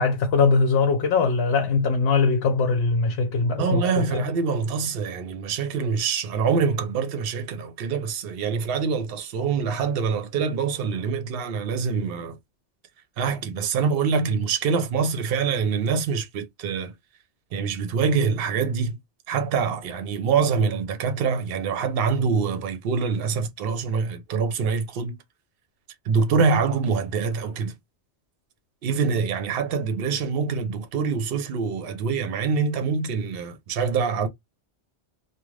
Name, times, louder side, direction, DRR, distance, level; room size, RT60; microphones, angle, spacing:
voice 1, 0.0-4.3, left 4 dB, 70° left, 0.9 m, -21 dB
voice 2, 3.6-12.4 13.2-16.9 17.5-19.0 19.3-25.2 26.1-27.7 28.8-34.3, right 5 dB, 60° right, 0.8 m, -25 dB
2.4 x 2.2 x 3.1 m
omnidirectional pair, 1.2 m